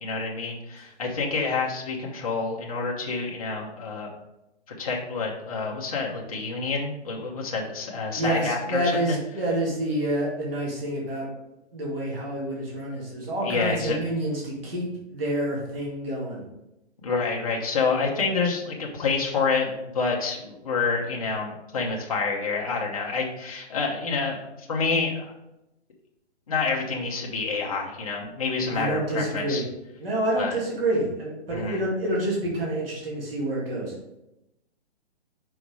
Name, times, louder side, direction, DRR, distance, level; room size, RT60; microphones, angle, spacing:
voice 1, 0.0-4.1 4.8-9.2 13.4-14.0 17.0-25.3 26.5-29.6 30.4-30.6 31.5-31.8, left 4 dB, 30° left, -2 dB, 0.9 m, -28 dB
voice 2, 8.2-11.3 11.7-16.4 28.7-29.6 30.0-33.9, right 1 dB, 55° right, -4 dB, 2.3 m, -28 dB
5.9 x 4.1 x 4.7 m, 0.91 s
hypercardioid pair, 175°, 34 cm